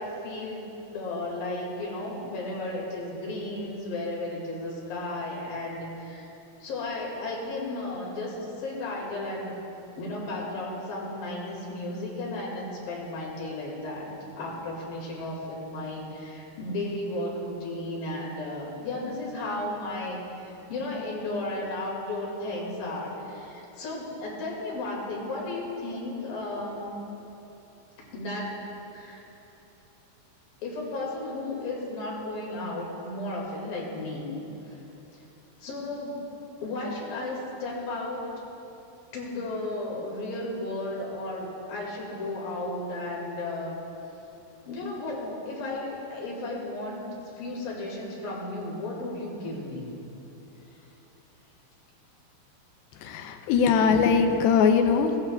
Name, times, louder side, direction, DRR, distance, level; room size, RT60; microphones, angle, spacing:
voice 1, 0.0-6.3 6.6-9.6 10.0-14.1 14.4-26.9 28.1-28.5 28.9-29.2 30.6-34.3 34.7-34.8 35.6-36.2 36.6-38.3 39.1-43.8 44.7-47.0 47.4-49.9 50.7-50.8, left 2 dB, 65° left, -3 dB, 3.4 m, -34 dB
voice 2, 53.0-55.2, left 6 dB, 80° left, 6 dB, 2.3 m, -21 dB
15.0 x 14.5 x 2.2 m, 3.0 s
omnidirectional pair, 4.7 m